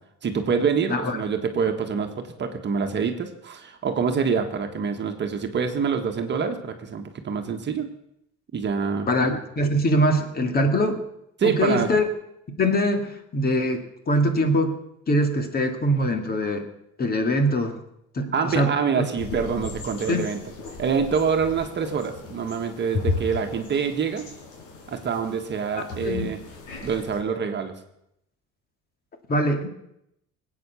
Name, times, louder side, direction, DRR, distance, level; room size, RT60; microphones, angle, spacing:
voice 1, 0.2-7.9 8.5-9.1 11.4-11.9 18.3-20.4 20.8-24.3 24.9-26.4 26.8-27.7, right 6 dB, 35° right, 5 dB, 1.5 m, -26 dB
voice 2, 0.9-1.2 9.1-11.0 11.4-12.1 12.6-14.8 15.1-16.7 17.0-17.8 18.1-19.1 20.1-20.3 26.0-26.3 29.3-29.7, equal, 30° left, 6 dB, 2.1 m, -23 dB
sound 1, 19.2-27.2, left 4 dB, 85° left, 5.1 m, -35 dB
21.0 x 8.7 x 7.0 m, 0.80 s
cardioid pair, 145°, 31 cm